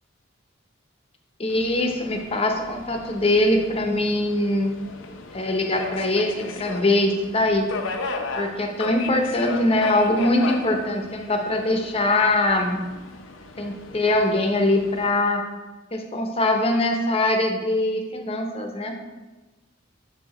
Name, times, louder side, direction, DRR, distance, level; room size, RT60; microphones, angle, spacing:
voice 1, 1.4-4.8 5.3-7.7 8.4-12.8 13.6-15.4 15.9-19.0, left 1 dB, 30° left, 3 dB, 0.8 m, -22 dB
Subway metro underground, 1.5-15.1, left 3 dB, 65° left, 0.7 m, -36 dB
7.4 x 4.8 x 4.3 m, 1.2 s
head